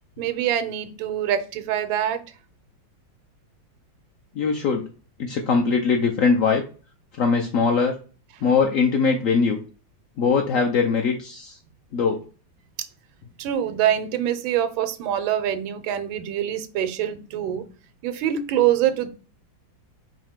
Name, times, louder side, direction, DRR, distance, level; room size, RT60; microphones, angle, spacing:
voice 1, 0.2-2.2 12.8-12.9 13.4-17.6 18.0-19.1, right 10 dB, 90° right, 1.4 m, -24 dB
voice 2, 4.3-4.8 5.2-6.6 7.2-7.9 8.4-9.6 10.2-11.6 11.9-12.2, left 5 dB, 75° left, 0.7 m, -21 dB
4.9 x 2.8 x 3.5 m
omnidirectional pair, 2.1 m